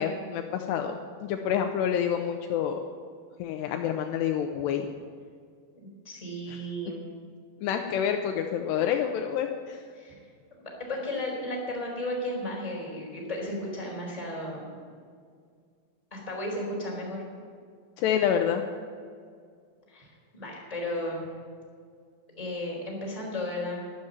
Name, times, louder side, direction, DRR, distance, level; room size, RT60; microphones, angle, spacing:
voice 1, 0.0-2.8 3.4-4.9 7.6-9.8 18.0-18.6, left 8 dB, 80° left, 5 dB, 2.6 m, -28 dB
voice 2, 6.0-7.0 9.9-10.2 10.9-14.7 16.1-17.2 19.9-21.3 22.4-23.8, left 1 dB, 10° left, -3 dB, 3.6 m, -34 dB
12.0 x 12.0 x 9.2 m, 2.1 s
omnidirectional pair, 5.4 m